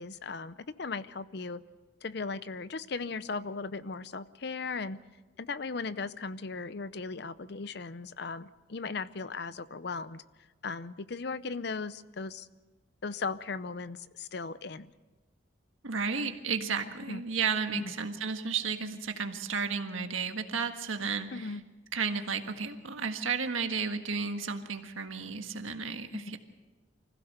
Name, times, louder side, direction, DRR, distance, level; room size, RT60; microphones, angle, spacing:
voice 1, 0.0-1.6 2.0-5.0 5.4-10.2 10.6-12.5 13.0-14.9 17.1-17.2 17.7-17.9 21.3-21.6 26.1-26.3, left 4 dB, 55° left, 15 dB, 0.6 m, -37 dB
voice 2, 15.8-21.5 21.9-26.4, right 5 dB, 85° right, 6 dB, 1.6 m, -33 dB
25.0 x 16.0 x 6.8 m, 1.2 s
head